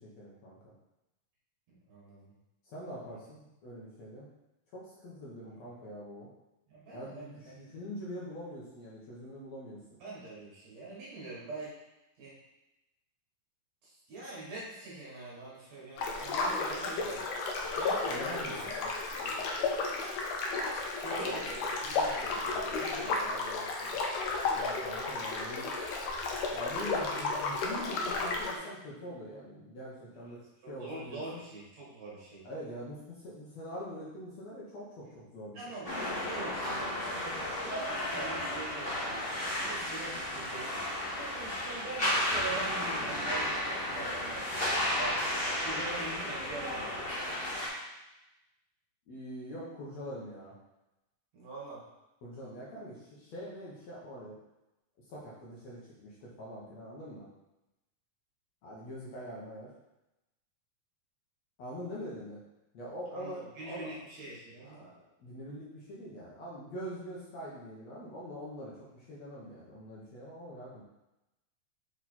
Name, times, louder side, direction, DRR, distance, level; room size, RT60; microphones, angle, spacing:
voice 1, 0.2-0.7 2.6-4.3 4.7-6.3 6.9-9.8 18.1-18.9 21.3-21.4 24.5-25.7 26.5-30.4 30.7-31.4 32.4-35.8 49.1-50.6 52.2-54.4 55.1-57.3 58.6-59.7 61.6-62.4 62.7-64.0 64.6-70.8, equal, 60° left, -7 dB, 2.1 m, -44 dB
voice 2, 1.7-2.3 3.0-3.2 5.5-5.6 6.7-7.8 10.0-11.7 12.2-12.3 13.8-17.2 17.7-18.7 19.1-19.5 20.9-24.0 30.1-30.3 30.6-32.4 35.5-40.8 41.1-46.9 51.3-51.8 63.1-64.9, right 2 dB, 55° right, -7 dB, 2.7 m, -44 dB
sound 1, 16.0-28.6, left 3 dB, 75° left, 1.6 m, -33 dB
sound 2, 35.8-47.7, left 1 dB, 25° left, 1.2 m, -33 dB
6.5 x 4.4 x 4.3 m, 0.95 s
omnidirectional pair, 4.0 m